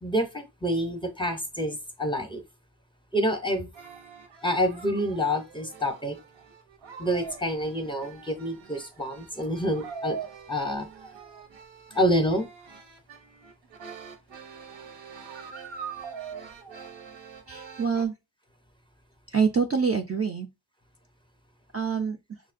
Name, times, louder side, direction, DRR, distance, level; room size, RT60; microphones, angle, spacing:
voice 1, 0.0-2.4 3.1-3.7 4.4-6.2 7.0-10.2 10.5-10.9 11.9-12.5, equal, 10° left, 0.6 m, -27 dB
sound 1, 3.7-18.1, right 5 dB, 85° right, 0.7 m, -43 dB
voice 2, 17.5-18.1 19.3-20.5 21.7-22.2, right 5 dB, 35° right, 0.4 m, -25 dB
6.2 x 2.1 x 2.5 m
wide cardioid pair, 100°, 44 cm